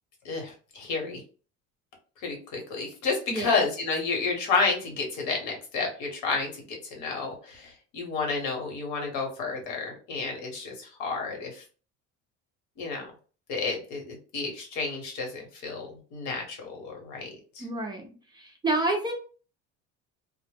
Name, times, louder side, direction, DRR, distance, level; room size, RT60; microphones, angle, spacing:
voice 1, 0.2-1.2 2.2-6.5 6.9-11.6 12.8-13.1 13.5-17.3 17.5-17.6, left 4 dB, 80° left, 1 dB, 1.1 m, -30 dB
voice 2, 17.6-18.1 18.3-19.1, right 2 dB, 15° right, 1 dB, 0.4 m, -29 dB
2.1 x 2.0 x 3.2 m, 0.38 s
cardioid pair, 150°, 30 cm